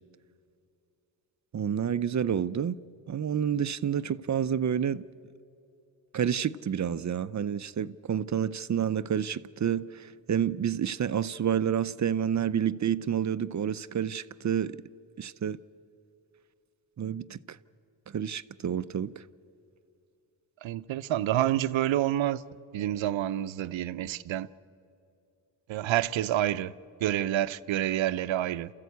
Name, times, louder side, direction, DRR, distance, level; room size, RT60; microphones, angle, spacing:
voice 1, 1.5-2.8 3.1-5.0 6.1-14.8 15.2-15.6 17.0-17.6 18.1-19.2, right 8 dB, 40° right, 0.5 m, -29 dB
voice 2, 20.6-22.4 22.7-24.5 25.7-26.7 27.0-28.7, right 12 dB, 80° right, 0.7 m, -28 dB
28.5 x 14.5 x 8.3 m
cardioid pair, 75°, 46 cm